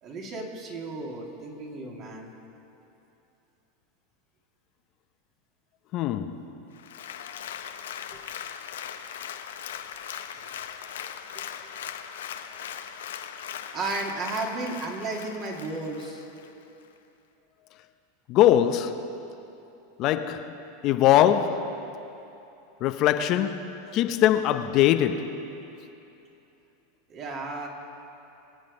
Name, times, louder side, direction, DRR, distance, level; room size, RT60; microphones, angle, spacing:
voice 1, 0.0-2.3 8.1-8.2 10.3-10.4 11.4-11.5 13.7-16.3 23.9-24.0 27.1-27.7, right 3 dB, 40° right, 2.4 m, -34 dB
voice 2, 5.9-6.5 18.3-19.2 20.0-20.6 20.8-21.9 22.8-25.5, left 11 dB, 50° left, 0.6 m, -22 dB
Applause, 6.7-16.5 17.0-17.1, left 9 dB, 85° left, 0.7 m, -39 dB
22.5 x 8.0 x 5.3 m
supercardioid pair, 120°, 0 cm